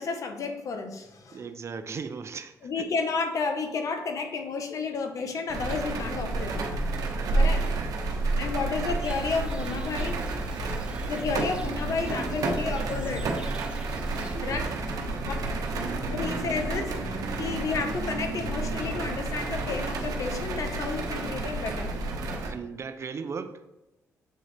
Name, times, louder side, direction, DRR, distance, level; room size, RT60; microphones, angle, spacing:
voice 1, 0.0-1.4 2.6-6.6 7.3-7.6 8.4-10.2 11.1-13.3 14.4-14.6 15.3-15.4 16.1-21.9, left 4 dB, 60° left, 5 dB, 1.0 m, -31 dB
voice 2, 1.3-2.9 7.1-8.4 14.3-14.8 22.4-23.6, right 5 dB, 45° right, 10 dB, 0.5 m, -38 dB
sound 1, 5.5-22.5, right 2 dB, 75° right, 0.9 m, -30 dB
sound 2, 9.0-14.4, right 1 dB, 15° right, 1.0 m, -46 dB
7.7 x 3.8 x 3.4 m, 0.96 s
cardioid pair, 65°, 6 cm